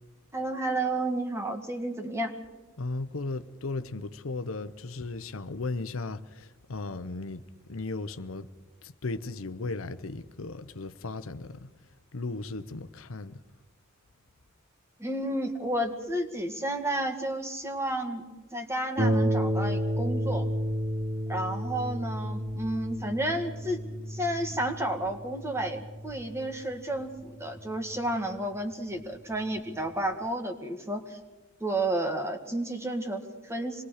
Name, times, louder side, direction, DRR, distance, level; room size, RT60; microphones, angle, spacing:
voice 1, 0.3-2.3 15.0-18.3 18.5-20.5 21.3-23.8 24.1-31.2 31.6-33.8, right 1 dB, 15° right, 2.0 m, -31 dB
voice 2, 2.8-7.4 7.7-8.5 8.8-11.7 12.1-13.4, left 3 dB, 85° left, 0.9 m, -36 dB
Harp, 19.0-28.1 29.0-29.1 29.6-29.7, equal, 35° right, 3.2 m, -31 dB
26.5 x 20.5 x 5.0 m
head